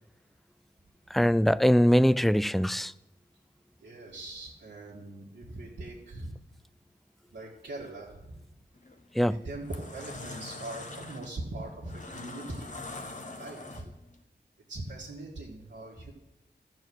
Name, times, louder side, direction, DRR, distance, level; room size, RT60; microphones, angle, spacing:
voice 1, 1.1-2.9 9.1-9.4, equal, ahead, 0.3 m, -22 dB
voice 2, 3.8-6.3 7.3-8.4 9.3-13.0 13.4-13.9 14.7-16.1, right 2 dB, 85° right, 1.9 m, -41 dB
sound 1, 8.8-9.0 9.5-14.1, left 2 dB, 45° left, 1.1 m, -43 dB
14.0 x 4.8 x 7.8 m
wide cardioid pair, 65°, 18 cm